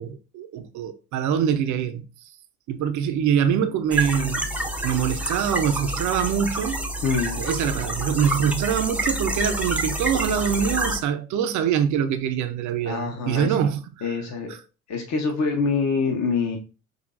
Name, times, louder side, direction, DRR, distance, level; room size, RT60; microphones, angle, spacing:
voice 1, 0.0-2.0 2.7-4.5 4.8-6.9 7.4-14.1, right 8 dB, 45° right, 0.7 m, -24 dB
sound 1, 3.9-11.0, right 1 dB, 5° right, 0.7 m, -28 dB
voice 2, 7.0-7.4 12.8-13.5 14.0-14.5 14.9-16.6, left 4 dB, 40° left, 1.0 m, -25 dB
6.4 x 2.7 x 2.5 m
figure-of-eight pair, 60°, 43 cm